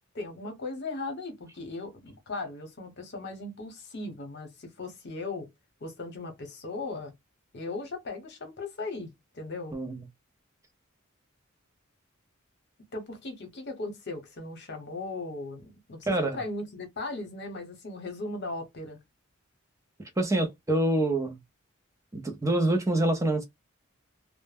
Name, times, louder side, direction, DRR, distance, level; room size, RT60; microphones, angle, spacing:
voice 1, 0.1-5.5 5.8-7.1 7.5-9.8 12.9-19.0, left 2 dB, 55° left, 0.8 m, -38 dB
voice 2, 16.1-16.4 20.2-21.4 22.1-23.4, right 1 dB, 15° right, 0.5 m, -26 dB
2.1 x 2.1 x 3.3 m
head